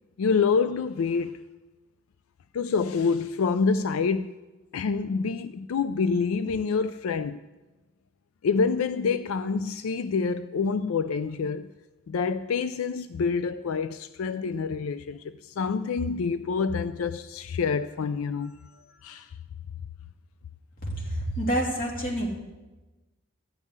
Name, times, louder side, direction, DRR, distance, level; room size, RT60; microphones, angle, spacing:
voice 1, 0.2-1.4 2.5-4.3 4.7-7.4 8.4-11.7 12.1-18.6 19.0-19.3, left 5 dB, 85° left, 0.4 m, -27 dB
voice 2, 20.8-22.3, right 1 dB, 40° left, 2.7 m, -28 dB
13.5 x 5.5 x 9.4 m
head